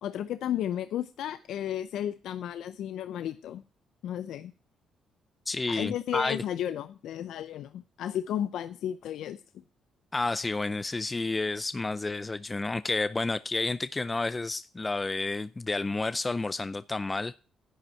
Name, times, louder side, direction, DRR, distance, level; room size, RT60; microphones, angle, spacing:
voice 1, 0.0-3.6 4.0-4.5 5.7-9.4, left 11 dB, 80° left, 12 dB, 0.6 m, -33 dB
voice 2, 5.5-6.4 10.1-17.4, left 3 dB, 20° left, 15 dB, 0.4 m, -30 dB
11.5 x 9.1 x 4.5 m, 0.37 s
cardioid pair, 90°, 0 cm